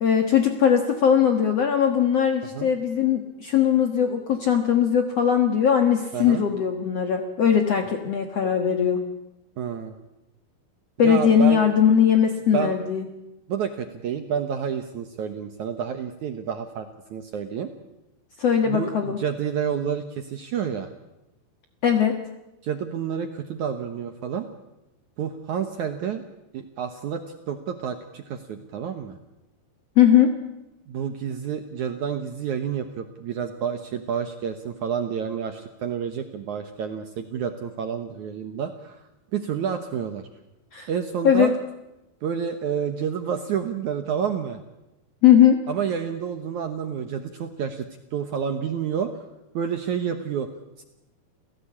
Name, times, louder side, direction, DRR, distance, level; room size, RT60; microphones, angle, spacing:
voice 1, 0.0-9.0 11.0-13.1 18.4-19.2 21.8-22.2 30.0-30.3 40.7-40.9 41.2-41.5 45.2-45.6, left 8 dB, 60° left, 6 dB, 1.7 m, -19 dB
voice 2, 9.6-10.0 11.0-11.6 12.5-12.8 13.5-17.7 18.6-20.9 22.6-24.5 25.2-26.2 26.5-29.2 30.9-39.0 39.3-40.3 40.9-41.5 42.2-44.6 45.7-49.1 49.5-50.5 50.8-50.9, right 7 dB, 65° right, 8 dB, 2.0 m, -29 dB
29.0 x 16.5 x 8.6 m, 0.96 s
omnidirectional pair, 4.8 m